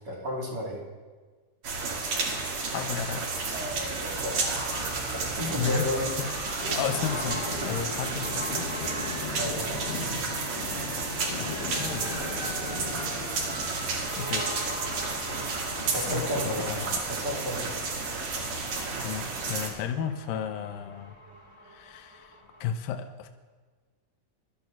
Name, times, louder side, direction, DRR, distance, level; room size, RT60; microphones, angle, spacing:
voice 1, 0.1-0.8 4.2-4.4 5.4-6.1 9.4-10.2 15.9-16.7 17.1-17.8, equal, 40° right, -3 dB, 1.6 m, -32 dB
sound 1, 1.6-19.7, right 3 dB, 65° right, 3.4 m, -32 dB
voice 2, 2.6-3.6 5.6-5.9 6.2-8.8 11.4-12.3 13.4-13.8 14.2-14.6 15.7-17.0 19.0-21.2 21.6-23.3, left 8 dB, 85° left, 7 dB, 2.4 m, -34 dB
sound 2, 3.5-22.7, equal, 10° right, 1.9 m, -41 dB
sound 3, 6.6-19.0, left 4 dB, 50° left, 1.8 m, -40 dB
22.5 x 13.0 x 2.4 m, 1.4 s
omnidirectional pair, 4.2 m